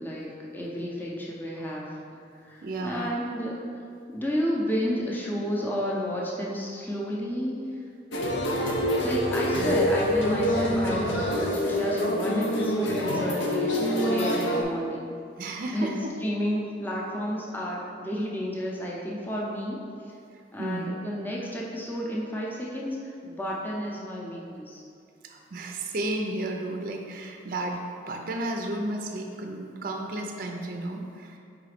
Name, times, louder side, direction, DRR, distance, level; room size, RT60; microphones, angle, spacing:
voice 1, 0.0-2.0 2.4-3.5 4.1-7.6 8.2-8.3 9.0-15.1 15.7-20.1 20.5-24.8, equal, 10° left, -4 dB, 0.6 m, -31 dB
voice 2, 2.6-3.1 9.5-9.7 15.4-16.0 20.3-20.8 25.2-31.4, right 2 dB, 50° right, 2 dB, 0.5 m, -33 dB
sound 1, 8.1-14.6, equal, 85° left, 0.7 m, -26 dB
4.9 x 3.9 x 4.9 m, 2.4 s
head